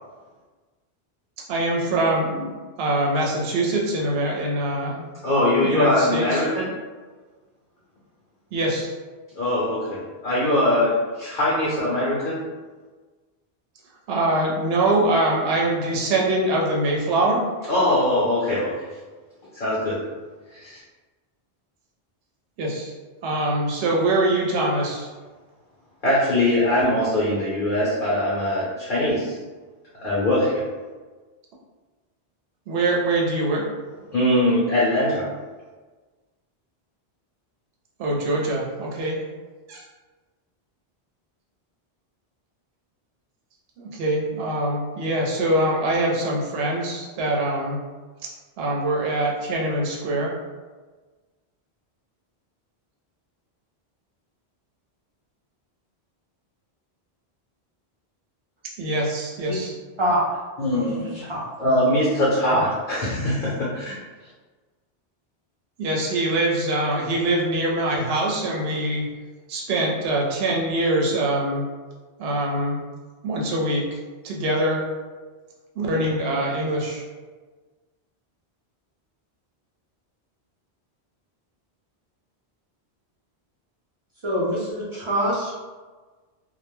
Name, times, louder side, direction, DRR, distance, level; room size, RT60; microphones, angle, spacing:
voice 1, 1.5-2.5 2.8-5.0 5.6-6.4 8.5-8.9 14.1-17.5 22.6-22.9 23.2-25.1 32.7-33.7 38.0-39.2 39.7-39.8 43.8-47.8 48.2-48.3 48.6-50.3 58.8-59.7 65.8-69.1 69.5-71.6 72.2-72.8 73.2-74.0 74.2-74.9 75.8-77.0, right 1 dB, 70° right, -2 dB, 0.8 m, -23 dB
voice 2, 5.2-6.7 9.4-12.4 17.7-18.9 19.5-20.0 20.5-20.8 26.0-29.4 30.0-30.6 34.1-35.3 60.6-61.1 61.6-64.0, left 1 dB, 60° left, -7 dB, 0.7 m, -22 dB
voice 3, 60.0-60.4 60.7-61.7 62.5-62.6 84.2-85.6, equal, 40° right, -7 dB, 0.4 m, -26 dB
2.2 x 2.1 x 3.0 m, 1.3 s
omnidirectional pair, 1.1 m